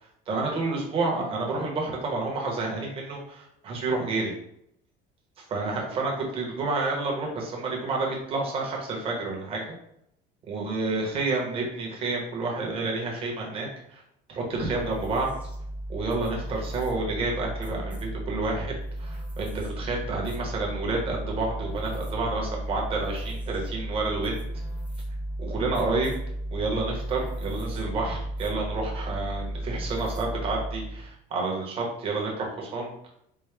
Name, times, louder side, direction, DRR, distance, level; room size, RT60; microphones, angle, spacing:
voice 1, 0.3-4.3 5.5-9.7 10.5-14.0 14.3-15.3 15.9-24.4 25.4-26.1 26.5-32.9, right 3 dB, 30° right, -1 dB, 0.9 m, -29 dB
sound 1, 14.5-31.1, right 1 dB, 5° right, 0.5 m, -34 dB
4.5 x 2.1 x 3.2 m, 0.75 s
cardioid pair, 180°, 19 cm